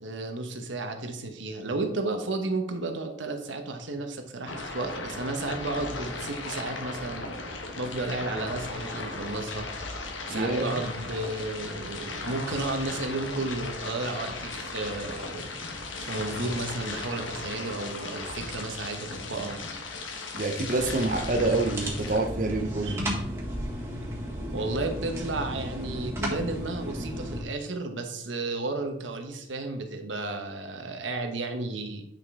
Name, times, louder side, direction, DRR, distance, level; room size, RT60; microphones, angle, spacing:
voice 1, 0.0-7.3 7.8-9.7 10.3-15.5 16.0-19.6 22.8-23.0 24.5-32.0, right 2 dB, 80° right, 1.1 m, -33 dB
sound 1, 4.5-22.2, left 3 dB, 90° left, 1.2 m, -37 dB
voice 2, 10.3-10.8 20.4-23.1, right 2 dB, 45° right, 0.7 m, -27 dB
sound 2, 20.8-27.4, equal, 15° right, 1.6 m, -34 dB
9.2 x 5.2 x 3.7 m
head